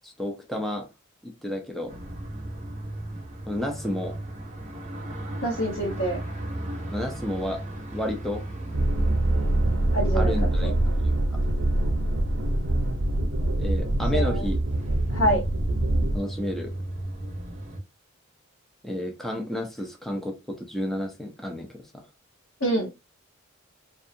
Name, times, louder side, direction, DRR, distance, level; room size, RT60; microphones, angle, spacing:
voice 1, 0.0-0.9 1.2-1.9 3.5-4.1 6.9-7.6 7.9-8.4 10.1-10.7 11.0-11.1 13.6-14.6 16.1-16.7 18.8-21.8, left 1 dB, ahead, 0.5 m, -31 dB
sound 1, 1.9-17.8, right 1 dB, 35° right, 0.7 m, -37 dB
voice 2, 5.4-6.2 9.9-10.3 10.6-10.7 14.1-14.5 15.1-15.4 22.6-22.9, right 1 dB, 85° left, 1.1 m, -26 dB
sound 2, 8.7-16.2, right 1 dB, 75° right, 0.6 m, -24 dB
2.6 x 2.3 x 2.6 m
head